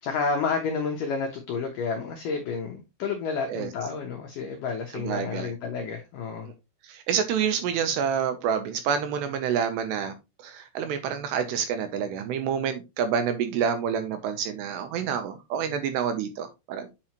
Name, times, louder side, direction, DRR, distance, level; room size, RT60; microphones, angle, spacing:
voice 1, 0.0-6.5, left 5 dB, 90° left, 1.8 m, -30 dB
voice 2, 4.9-5.5 6.9-10.1 10.4-16.9, right 7 dB, 80° right, 2.6 m, -28 dB
8.7 x 5.5 x 3.0 m
omnidirectional pair, 5.5 m